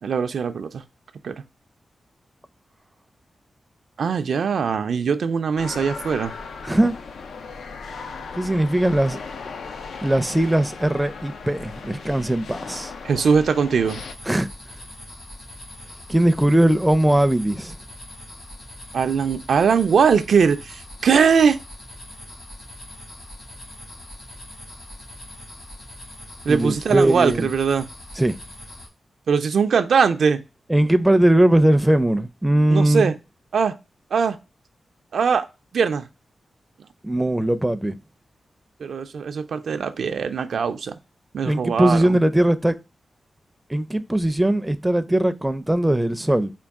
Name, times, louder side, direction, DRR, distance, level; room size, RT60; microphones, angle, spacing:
voice 1, 0.0-0.8 1.2-1.4 4.0-6.3 13.0-14.0 18.9-21.6 26.4-27.9 29.3-30.4 32.7-33.2 33.5-33.8 34.1-34.4 35.1-35.5 35.7-36.1 38.8-40.9 41.3-42.2, right 6 dB, 80° right, 0.3 m, -21 dB
sound 1, 5.6-14.2, left 4 dB, 85° left, 0.4 m, -37 dB
voice 2, 6.6-7.0 8.3-9.2 10.0-12.9 14.3-14.5 16.1-17.8 26.5-27.5 28.2-28.4 30.7-33.1 37.0-38.0 41.4-42.7 43.7-46.5, right 1 dB, 10° right, 0.4 m, -19 dB
sound 2, 13.8-28.9, left 1 dB, 60° left, 2.2 m, -41 dB
4.4 x 2.3 x 3.5 m
cardioid pair, 70°, 0 cm